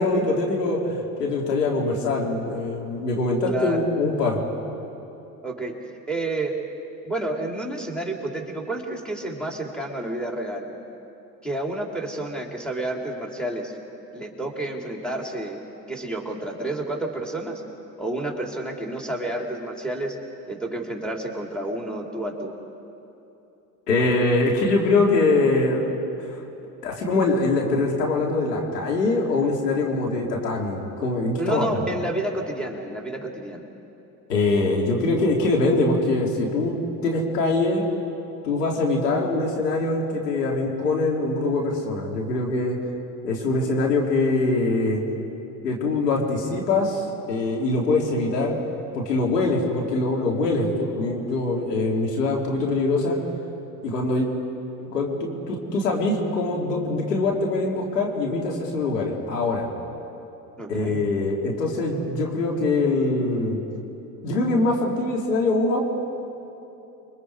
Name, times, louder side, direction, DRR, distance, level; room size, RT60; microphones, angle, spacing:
voice 1, 0.0-4.4 23.9-25.9 26.2-26.4 26.8-31.8 34.3-36.7 37.0-37.8 38.4-42.8 43.2-45.0 45.6-48.5 48.9-53.2 53.8-54.3 54.8-59.7 60.7-63.6 64.2-65.8, left 2 dB, 85° left, -1 dB, 3.5 m, -23 dB
voice 2, 3.5-3.8 5.4-5.8 6.1-6.6 7.0-10.7 11.4-13.7 14.1-15.6 15.9-17.6 18.0-20.2 20.5-22.6 31.4-33.6 60.6-61.0, right 2 dB, ahead, 0 dB, 4.0 m, -30 dB
29.5 x 24.0 x 5.0 m, 2.9 s
hypercardioid pair, 75°, 47 cm